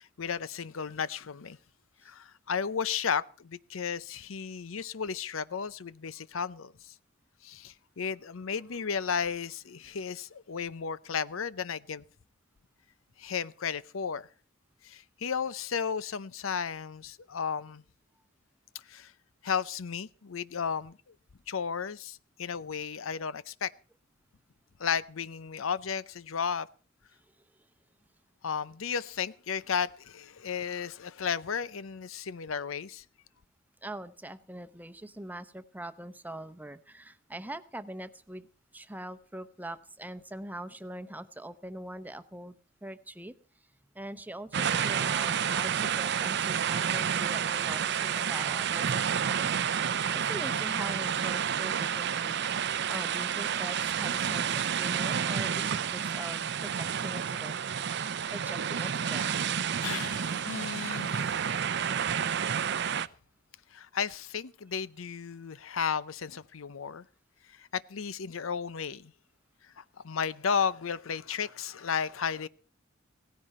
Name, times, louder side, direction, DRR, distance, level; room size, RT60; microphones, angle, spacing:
voice 1, 0.0-1.6 2.0-6.9 7.4-12.0 13.2-14.3 14.8-17.8 18.9-19.1 19.4-21.0 21.5-23.7 24.8-26.7 28.4-33.0 59.7-61.6 63.7-67.0 67.5-69.1 69.8-72.5, left 6 dB, 85° left, 0.7 m, -34 dB
voice 2, 33.8-38.5 38.7-42.5 42.8-43.3 43.9-49.5 49.9-52.4 52.9-57.6 58.3-59.7, right 1 dB, 10° right, 0.8 m, -42 dB
sound 1, 44.5-63.1, right 8 dB, 60° right, 0.6 m, -30 dB
17.5 x 15.0 x 4.3 m
head